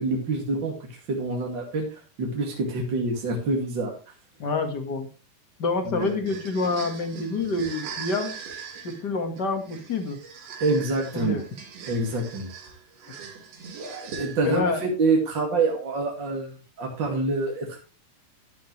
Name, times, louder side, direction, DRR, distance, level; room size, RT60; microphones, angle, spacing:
voice 1, 0.0-3.9 5.8-6.1 10.6-11.4 11.9-12.5 14.2-17.8, right 3 dB, 35° right, 0 dB, 2.3 m, -26 dB
voice 2, 4.4-5.1 5.6-8.3 8.8-10.2 11.1-11.4 14.4-14.8, left 3 dB, 45° left, 6 dB, 1.4 m, -27 dB
sound 1, 6.0-14.7, right 6 dB, 85° right, 4.8 m, -40 dB
12.5 x 11.5 x 3.2 m, 0.33 s
omnidirectional pair, 4.3 m